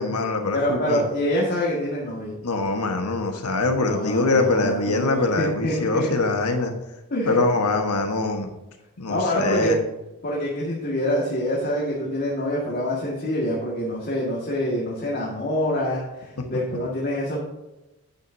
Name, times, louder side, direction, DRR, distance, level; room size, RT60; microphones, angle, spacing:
voice 1, 0.0-1.0 2.4-6.7 7.3-8.5 9.0-9.8 16.4-16.5, left 2 dB, 85° left, 4 dB, 1.4 m, -23 dB
voice 2, 0.5-2.3 3.8-6.1 7.1-7.4 9.1-9.7 10.2-17.4, equal, 45° left, -5 dB, 1.9 m, -26 dB
10.0 x 9.3 x 2.7 m, 0.98 s
head